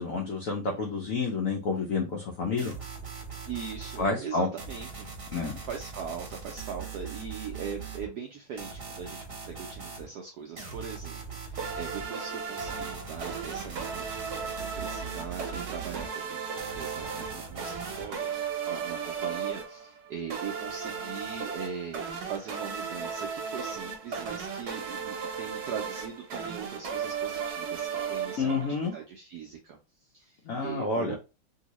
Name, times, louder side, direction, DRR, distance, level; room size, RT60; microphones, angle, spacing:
voice 1, 0.0-2.7 4.0-4.5 5.3-5.6 28.4-28.9 30.5-31.2, left 4 dB, 90° left, 0 dB, 0.7 m, -29 dB
voice 2, 0.7-1.1 3.5-5.1 5.6-29.8 30.1-31.2, right 7 dB, 80° right, 2 dB, 0.8 m, -40 dB
sound 1, 2.6-4.0 4.6-8.1 8.6-10.1 10.6-12.0 12.6-16.1 16.6-18.1, right 5 dB, 40° right, 0.9 m, -41 dB
sound 2, 11.6-29.0, right 6 dB, 60° right, 1.1 m, -36 dB
3.0 x 2.8 x 2.9 m, 0.29 s
omnidirectional pair, 2.3 m